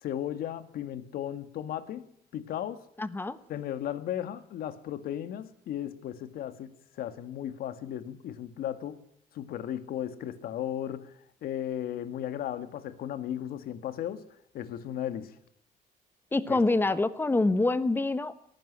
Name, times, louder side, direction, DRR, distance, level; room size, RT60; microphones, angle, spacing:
voice 1, 0.0-2.1 2.3-2.8 3.5-6.7 7.0-9.0 9.3-14.2 14.5-15.3 16.5-16.6, left 11 dB, 65° left, 12 dB, 1.8 m, -35 dB
voice 2, 3.0-3.4 16.3-18.4, left 2 dB, 15° left, 15 dB, 1.0 m, -26 dB
18.0 x 15.0 x 9.9 m, 0.71 s
cardioid pair, 150°, 16 cm